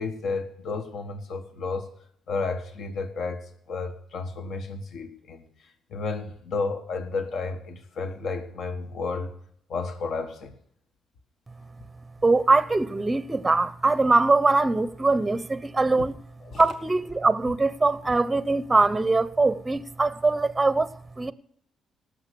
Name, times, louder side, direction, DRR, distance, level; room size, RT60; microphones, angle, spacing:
voice 1, 0.0-1.9 2.3-9.3 9.7-10.5 16.4-16.6, left 4 dB, 65° left, 1.4 m, -32 dB
voice 2, 12.2-16.1 16.6-20.9 21.2-21.3, right 3 dB, 20° right, 0.6 m, -22 dB
18.5 x 6.6 x 6.7 m
cardioid pair, 90°, 0 cm